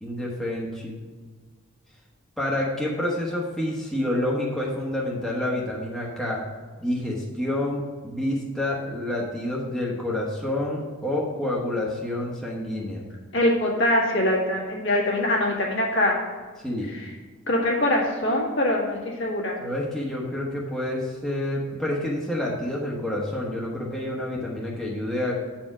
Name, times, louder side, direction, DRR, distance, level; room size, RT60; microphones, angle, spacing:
voice 1, 0.0-1.0 2.4-6.4 6.8-13.1 16.6-16.9 19.6-25.4, left 1 dB, ahead, -5 dB, 1.0 m, -28 dB
voice 2, 13.3-16.2 16.8-17.1 17.5-19.6, left 1 dB, 55° left, -2 dB, 1.7 m, -23 dB
8.1 x 4.4 x 6.0 m, 1.5 s
head